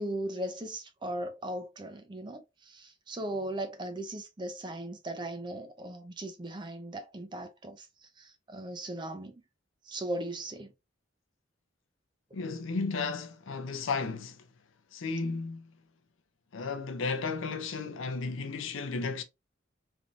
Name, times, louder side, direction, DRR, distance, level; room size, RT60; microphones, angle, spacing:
voice 1, 0.0-7.9 8.2-9.4 9.8-10.7 12.3-12.4, right 1 dB, 25° right, 0.5 m, -38 dB
voice 2, 12.3-14.4 14.9-15.7 16.5-19.2, left 4 dB, 80° left, 0.5 m, -34 dB
3.3 x 2.6 x 2.4 m
head